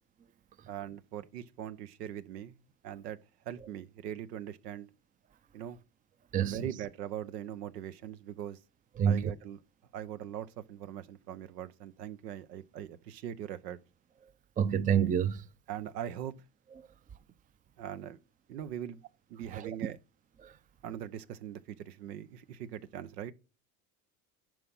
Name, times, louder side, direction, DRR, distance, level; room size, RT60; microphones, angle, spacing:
voice 1, 0.7-2.6 2.8-3.2 3.5-4.9 5.5-5.8 6.4-8.6 9.0-9.6 9.9-13.8 15.7-16.3 17.8-18.2 18.5-19.0 19.3-20.0 20.8-23.3, right 10 dB, 85° right, 1.0 m, -41 dB
voice 2, 9.0-9.3 14.6-15.4 19.5-19.6, right 8 dB, 20° right, 0.5 m, -27 dB
11.0 x 4.7 x 5.5 m
hypercardioid pair, 85°, 47 cm